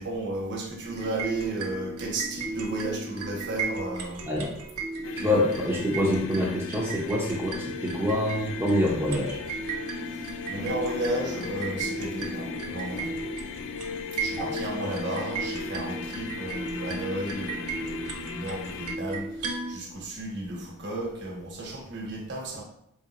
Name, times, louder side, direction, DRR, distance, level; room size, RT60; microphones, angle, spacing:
voice 1, 0.0-4.3 10.5-13.2 14.2-19.3 19.7-22.6, right 1 dB, 50° right, -1 dB, 1.2 m, -33 dB
sound 1, 0.8-19.8, right 3 dB, 80° right, 1.1 m, -36 dB
sound 2, 5.0-19.0, left 6 dB, 60° left, 0.3 m, -38 dB
voice 2, 5.2-9.4 14.4-14.5, left 1 dB, 10° right, -5 dB, 0.8 m, -26 dB
4.9 x 3.6 x 2.9 m, 0.75 s
head